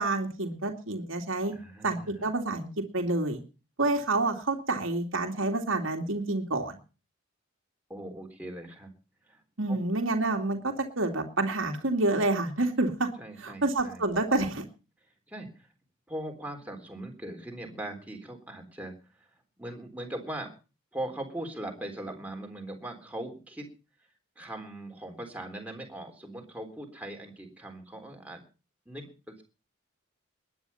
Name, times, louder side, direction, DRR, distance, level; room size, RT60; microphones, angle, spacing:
voice 1, 0.0-1.5 1.8-2.7 2.9-3.4 3.8-6.8 9.6-13.1 13.4-14.6, right 2 dB, 75° right, 3 dB, 2.5 m, -28 dB
voice 2, 1.5-2.3 7.9-8.9 9.2-9.4 9.7-9.8 13.2-14.1 15.3-15.7 16.1-19.3 19.6-20.5 20.9-23.7 24.4-28.4 28.9-29.4, right 1 dB, 5° right, 2 dB, 3.7 m, -40 dB
21.0 x 9.6 x 5.7 m, 0.35 s
head